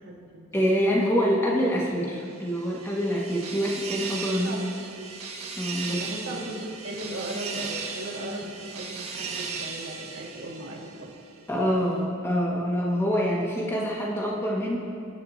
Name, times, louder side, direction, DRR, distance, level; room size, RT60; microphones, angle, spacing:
voice 1, 0.0-0.5 4.3-4.6 5.0-5.1 5.9-11.1, right 1 dB, 70° right, -2 dB, 2.4 m, -37 dB
voice 2, 0.5-4.6 5.6-6.0 11.5-14.8, equal, 10° left, -4 dB, 2.0 m, -25 dB
sound 1, 2.2-11.3, right 5 dB, 90° right, 1.9 m, -37 dB
23.5 x 10.5 x 3.0 m, 2.4 s
head